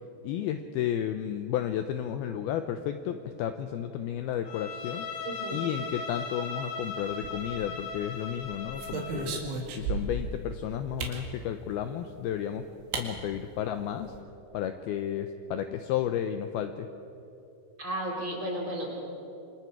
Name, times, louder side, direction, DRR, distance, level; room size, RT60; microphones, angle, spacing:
voice 1, 0.2-5.1 5.5-9.4 9.7-12.7 12.9-14.1 14.5-16.9, left 10 dB, 85° left, 8 dB, 2.2 m, -32 dB
Bowed string instrument, 4.5-9.4, left 4 dB, 55° left, 2.5 m, -38 dB
voice 2, 5.2-5.7 17.8-19.0, right 1 dB, 30° right, -3 dB, 4.3 m, -34 dB
sound 1, 7.1-7.8 8.3-10.3 11.0-11.3 12.4-12.5 12.9-13.1 13.4-13.5 13.8-14.2, right 4 dB, 80° right, 4.4 m, -35 dB
28.0 x 26.0 x 4.8 m, 2.9 s
omnidirectional pair, 5.3 m